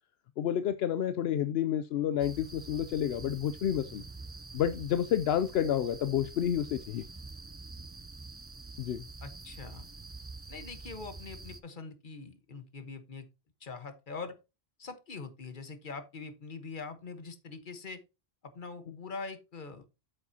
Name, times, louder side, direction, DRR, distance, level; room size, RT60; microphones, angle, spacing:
voice 1, 0.4-4.0 4.5-7.0 8.8-9.0, left 10 dB, 75° left, 0.8 m, -30 dB
sound 1, 2.2-11.6, right 3 dB, 20° right, 0.4 m, -46 dB
voice 2, 9.2-9.9 10.5-13.2 13.6-14.4 14.8-18.0 18.4-19.9, left 4 dB, 50° left, 1.4 m, -43 dB
8.4 x 7.2 x 2.8 m
omnidirectional pair, 1.1 m